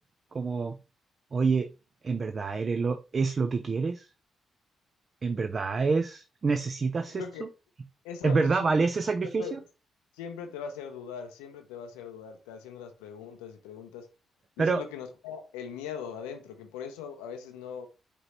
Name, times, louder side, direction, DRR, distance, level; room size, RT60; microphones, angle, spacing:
voice 1, 0.3-0.8 1.3-1.7 2.0-4.1 5.2-7.2 8.2-9.6 14.6-14.8, right 4 dB, 45° right, 0.4 m, -27 dB
voice 2, 7.1-7.4 8.0-8.7 9.2-9.6 10.1-14.1 14.6-17.9, left 7 dB, 90° left, 0.5 m, -40 dB
5.0 x 3.0 x 2.9 m
hypercardioid pair, 45°, 0 cm